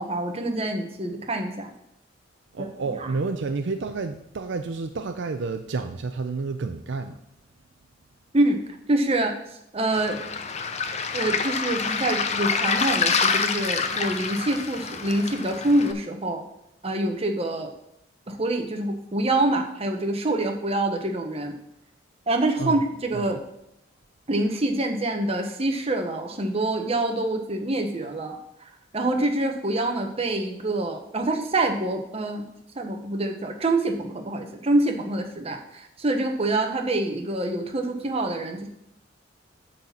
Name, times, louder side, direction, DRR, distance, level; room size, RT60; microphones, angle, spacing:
voice 1, 0.0-1.7 2.6-2.7 8.3-8.6 8.9-9.3 9.7-10.2 11.1-16.4 16.8-17.7 18.3-21.5 22.3-23.4 24.3-28.4 28.9-32.5 32.7-38.7, right 2 dB, 30° right, 4 dB, 1.0 m, -26 dB
voice 2, 2.5-7.2 22.6-22.8 23.1-23.4, right 4 dB, 65° right, 8 dB, 0.5 m, -30 dB
Waves surf, 9.9-15.9, left 5 dB, 35° left, 0.6 m, -27 dB
8.7 x 4.1 x 7.2 m, 0.79 s
head